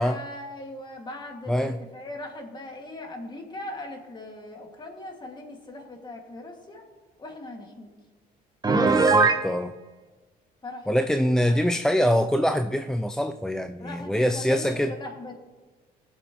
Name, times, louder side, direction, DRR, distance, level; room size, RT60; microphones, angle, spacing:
voice 1, 0.0-6.8 7.2-7.9 10.6-10.9 11.4-11.6 13.8-15.3, left 2 dB, 25° left, 2 dB, 2.1 m, -39 dB
voice 2, 1.5-1.8 8.8-9.8 10.9-14.9, equal, 5° left, 8 dB, 0.3 m, -24 dB
Piano, 8.6-9.5, right 4 dB, 25° right, 1.0 m, -19 dB
20.0 x 7.7 x 3.0 m, 1.3 s
cardioid pair, 110°, 17 cm